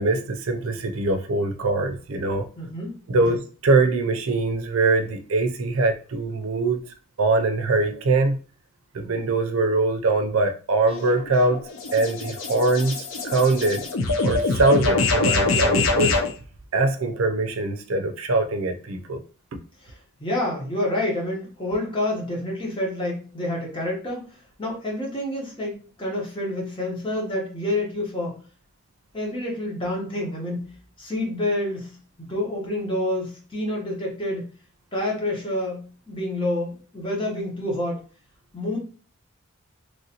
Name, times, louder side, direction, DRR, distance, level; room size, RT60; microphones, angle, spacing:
voice 1, 0.0-2.4 3.1-6.8 7.2-8.4 8.9-11.6 11.9-13.8 14.2-16.2 16.7-19.2, right 3 dB, 85° right, 6 dB, 0.5 m, -22 dB
voice 2, 2.6-3.0 3.2-3.4 19.8-24.3 24.6-28.4 29.1-34.4 34.9-38.0 38.5-38.8, left 1 dB, 25° left, -2 dB, 1.0 m, -28 dB
sound 1, 10.9-16.3, left 3 dB, 75° left, 0.5 m, -24 dB
3.1 x 2.5 x 2.8 m, 0.37 s
head